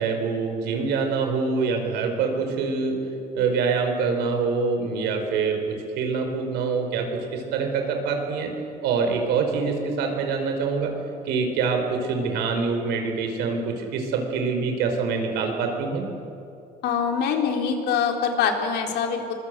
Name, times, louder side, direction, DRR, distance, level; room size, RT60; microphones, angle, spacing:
voice 1, 0.0-2.9 3.3-5.6 6.0-7.1 7.3-8.5 8.8-10.9 11.2-16.1, right 5 dB, 90° right, 4 dB, 4.8 m, -25 dB
voice 2, 16.8-19.3, left 6 dB, 80° left, 3 dB, 3.8 m, -24 dB
24.5 x 22.5 x 8.2 m, 2.7 s
cardioid pair, 110°, 17 cm